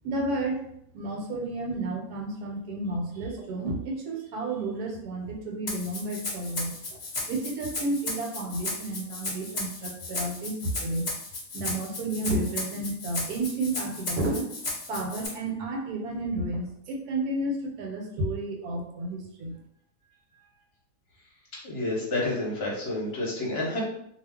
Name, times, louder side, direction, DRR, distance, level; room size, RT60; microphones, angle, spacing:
voice 1, 0.0-0.6 0.9-7.0 7.3-11.1 11.5-14.6 14.9-19.6, right 2 dB, 75° right, 2 dB, 1.1 m, -31 dB
Rattle (instrument), 5.7-15.3, left 2 dB, 85° left, 0.3 m, -35 dB
voice 2, 21.6-23.8, left 2 dB, 45° left, -4 dB, 0.9 m, -29 dB
2.4 x 2.4 x 3.4 m, 0.72 s
omnidirectional pair, 1.7 m